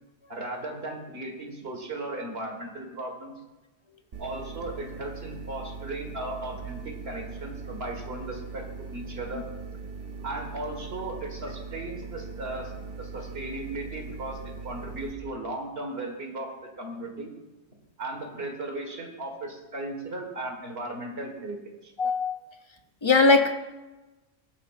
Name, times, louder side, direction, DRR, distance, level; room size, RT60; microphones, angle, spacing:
voice 1, 0.3-3.3 4.2-9.4 10.2-12.7 13.0-17.3 18.0-21.9, right 2 dB, 60° right, 2 dB, 2.0 m, -36 dB
sound 1, 4.1-15.1, right 4 dB, 90° right, 1.6 m, -40 dB
voice 2, 22.0-22.4 23.0-23.5, left 3 dB, 30° left, 6 dB, 0.6 m, -20 dB
19.0 x 9.3 x 2.6 m, 1.1 s
omnidirectional pair, 1.2 m